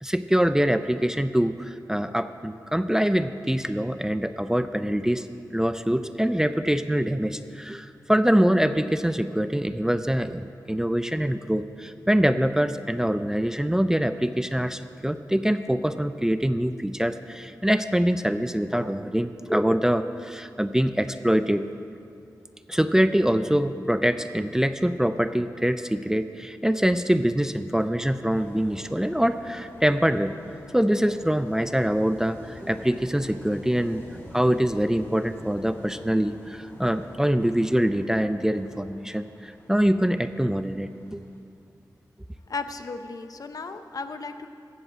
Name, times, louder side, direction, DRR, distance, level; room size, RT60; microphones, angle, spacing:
voice 1, 0.0-5.3 5.5-21.7 22.7-30.4 30.7-34.0 34.3-41.2, equal, 5° right, 11 dB, 0.4 m, -24 dB
sound 1, 28.3-41.4, left 1 dB, 30° left, 3.5 m, -47 dB
voice 2, 42.5-44.5, left 4 dB, 60° left, 8 dB, 0.7 m, -35 dB
15.5 x 5.5 x 7.5 m, 2.5 s
cardioid pair, 65°, 7 cm